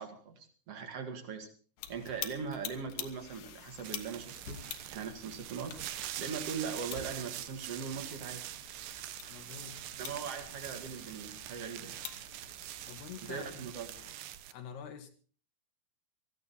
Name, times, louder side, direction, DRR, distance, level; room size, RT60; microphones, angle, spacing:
voice 1, 0.0-1.5 1.9-4.6 4.9-5.8 6.2-8.4 10.0-12.0 13.2-13.9, right 6 dB, 45° right, 6 dB, 2.8 m, -40 dB
sound 1, 1.8-14.2, left 9 dB, 65° left, 2.6 m, -48 dB
sound 2, 3.8-14.5, right 13 dB, 75° right, 2.2 m, -44 dB
voice 2, 9.3-9.8 12.9-13.7 14.5-15.1, left 7 dB, 90° left, 6 dB, 4.0 m, -46 dB
18.5 x 15.0 x 4.2 m, 0.40 s
omnidirectional pair, 4.5 m